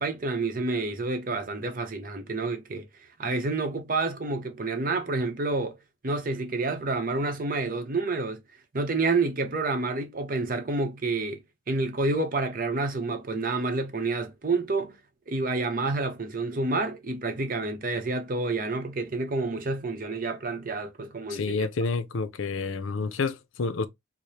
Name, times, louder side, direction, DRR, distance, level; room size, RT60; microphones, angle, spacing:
voice 1, 0.0-2.9 3.2-5.8 6.0-8.4 8.7-11.4 11.7-15.0 15.3-21.6, right 3 dB, 40° right, 0.7 m, -29 dB
voice 2, 21.3-23.9, left 4 dB, 75° left, 0.5 m, -29 dB
4.9 x 2.1 x 2.7 m
head